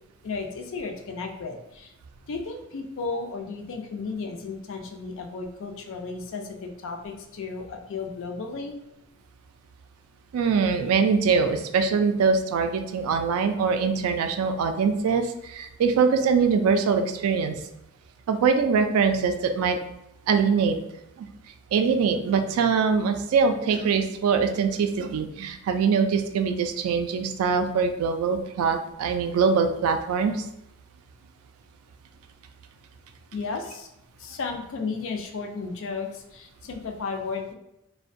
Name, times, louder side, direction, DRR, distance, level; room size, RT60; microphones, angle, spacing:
voice 1, 0.2-1.9 2.3-8.7 33.3-33.9 34.2-37.5, left 4 dB, 65° left, 4 dB, 0.4 m, -34 dB
voice 2, 10.3-17.6 18.3-19.8 20.3-20.8 21.2-21.3 21.7-30.4, right 5 dB, 85° right, 10 dB, 0.3 m, -23 dB
2.4 x 2.2 x 2.5 m, 0.88 s
head